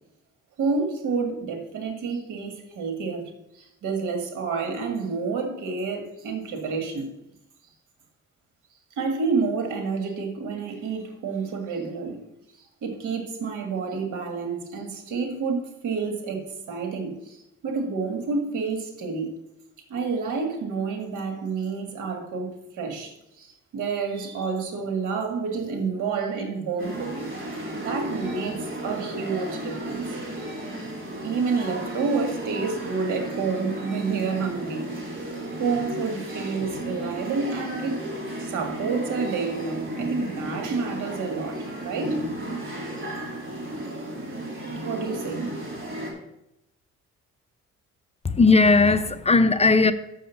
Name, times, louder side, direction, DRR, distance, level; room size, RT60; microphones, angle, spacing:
voice 1, 0.6-7.1 8.9-12.2 12.6-19.3 19.9-27.3 27.8-30.1 31.2-34.9 35.6-38.1 38.4-42.2 44.8-45.5, right 4 dB, 85° right, 2.0 m, -29 dB
sound 1, 26.8-46.1, right 1 dB, 40° right, 2.9 m, -33 dB
voice 2, 48.2-49.9, left 3 dB, 20° left, 0.6 m, -17 dB
6.6 x 6.3 x 6.9 m
cardioid pair, 90°, 30 cm